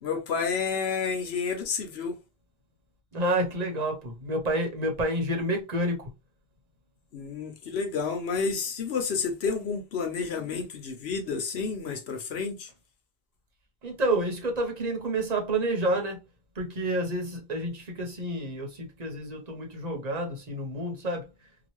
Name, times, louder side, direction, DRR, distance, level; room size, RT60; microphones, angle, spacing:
voice 1, 0.0-2.2 7.1-12.7, left 5 dB, 80° left, 1.0 m, -30 dB
voice 2, 3.1-6.1 13.8-16.2 16.6-21.3, right 1 dB, 45° right, 0.9 m, -29 dB
2.9 x 2.3 x 3.0 m
omnidirectional pair, 1.1 m